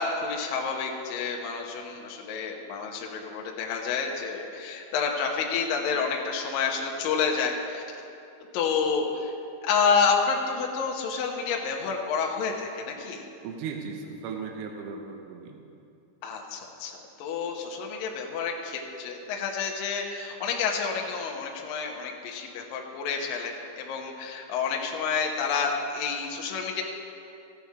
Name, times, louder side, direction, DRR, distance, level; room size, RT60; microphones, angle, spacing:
voice 1, 0.0-7.8 8.5-9.3 9.6-13.2 16.2-26.8, left 5 dB, 80° left, 0 dB, 2.1 m, -29 dB
voice 2, 13.4-15.6, right 5 dB, 90° right, 2 dB, 3.4 m, -37 dB
15.0 x 8.8 x 4.7 m, 2.7 s
omnidirectional pair, 5.5 m